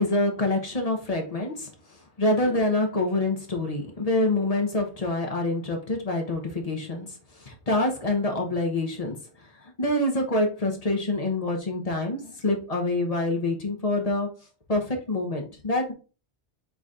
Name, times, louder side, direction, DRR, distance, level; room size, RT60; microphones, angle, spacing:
voice 1, 0.0-1.7 2.2-7.1 7.4-9.2 9.6-14.3 14.7-15.9, left 2 dB, 35° left, 2 dB, 1.0 m, -26 dB
4.6 x 4.0 x 2.5 m, 0.33 s
omnidirectional pair, 1.2 m